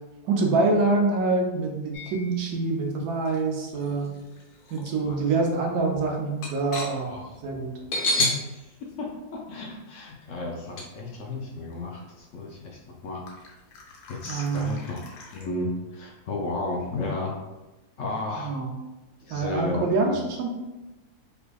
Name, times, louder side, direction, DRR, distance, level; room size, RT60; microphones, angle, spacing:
voice 1, 0.3-4.1 4.7-7.7 14.3-14.7 18.4-18.7 19.3-20.5, right 3 dB, 80° right, 2 dB, 1.2 m, -25 dB
sound 1, 1.9-2.7 3.3-4.9 5.3-5.4 5.8-8.4 8.8-8.9 10.8-10.9 11.7-11.8 12.4-12.5 13.3-15.5, left 1 dB, 85° left, 1.3 m, -32 dB
voice 2, 3.8-4.3 5.0-5.3 5.6-5.9 7.0-7.4 8.2-13.2 14.1-15.0 15.3-17.4 18.0-18.6 19.2-20.3, left 2 dB, 65° left, -1 dB, 0.8 m, -34 dB
3.4 x 3.3 x 2.2 m, 1.1 s
omnidirectional pair, 1.6 m